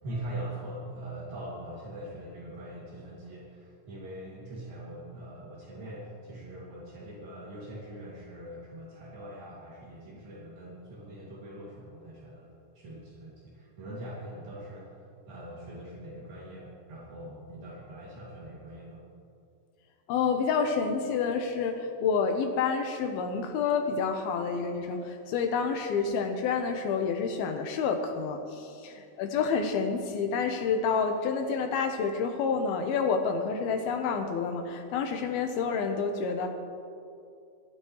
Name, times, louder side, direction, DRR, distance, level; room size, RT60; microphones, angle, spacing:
voice 1, 0.0-12.5 12.8-15.0 15.3-19.0, right 1 dB, 65° right, -7 dB, 4.1 m, -42 dB
voice 2, 20.1-36.5, left 5 dB, 80° left, 5 dB, 2.7 m, -29 dB
20.5 x 12.5 x 3.2 m, 2.5 s
omnidirectional pair, 4.6 m